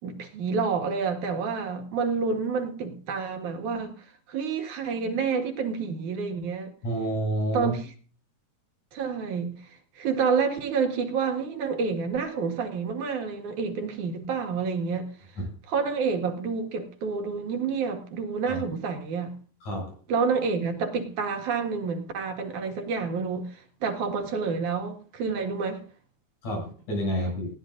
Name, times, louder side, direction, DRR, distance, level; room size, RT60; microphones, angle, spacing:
voice 1, 0.0-3.9 4.3-6.7 7.5-7.9 8.9-9.5 10.0-15.1 15.7-19.3 20.1-25.8, right 5 dB, 80° right, 3.4 m, -28 dB
voice 2, 6.8-7.7 15.4-15.5 18.5-18.6 19.6-19.9 26.4-27.5, right 1 dB, 75° left, 8.9 m, -29 dB
19.5 x 15.5 x 2.6 m
omnidirectional pair, 3.4 m